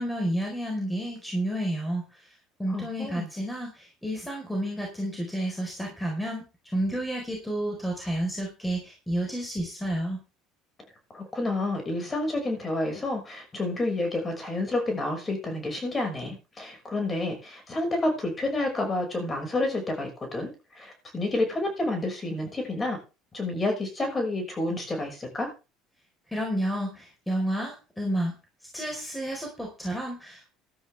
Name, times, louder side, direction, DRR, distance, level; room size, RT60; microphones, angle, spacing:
voice 1, 0.0-2.0 2.6-6.4 6.7-10.2 26.3-28.3 28.7-30.6, right 1 dB, 5° left, 1 dB, 4.3 m, -30 dB
voice 2, 2.7-3.3 11.1-23.0 23.3-25.5, left 2 dB, 20° left, 4 dB, 5.9 m, -29 dB
14.0 x 13.0 x 3.5 m, 0.31 s
supercardioid pair, 110°, 0 cm